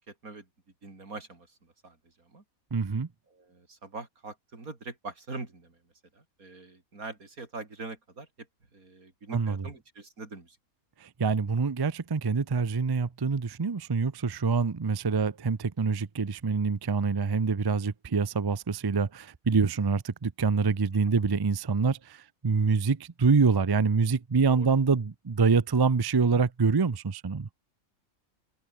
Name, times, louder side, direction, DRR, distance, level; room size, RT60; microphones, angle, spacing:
voice 1, 0.1-0.4 0.8-1.5 1.8-2.0 2.3-2.4 3.3-5.8 6.1-8.3 8.7-10.6 24.5-24.7, right 3 dB, 80° right, 4.2 m, -43 dB
voice 2, 2.7-3.1 9.3-9.7 11.2-22.0 22.4-27.5, right 5 dB, 35° right, 0.4 m, -25 dB
omnidirectional pair, 1.5 m